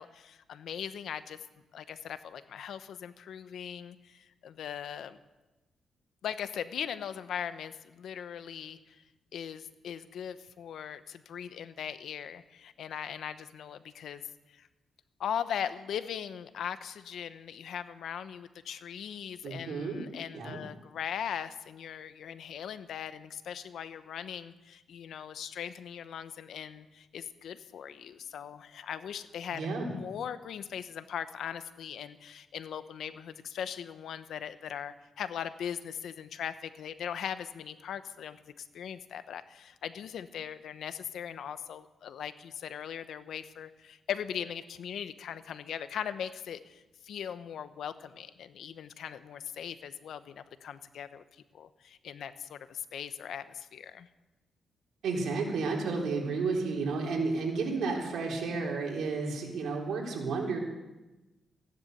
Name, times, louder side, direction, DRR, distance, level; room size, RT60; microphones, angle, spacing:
voice 1, 0.0-1.4 1.7-5.2 6.2-9.0 9.3-14.2 14.5-14.7 15.2-51.2 51.5-54.1, left 8 dB, 75° left, 12 dB, 0.9 m, -39 dB
voice 2, 19.4-20.0 20.3-20.6 29.5-29.9 55.0-60.6, right 4 dB, 75° right, 0 dB, 3.8 m, -32 dB
15.5 x 10.5 x 8.0 m, 1.1 s
cardioid pair, 115°, 0 cm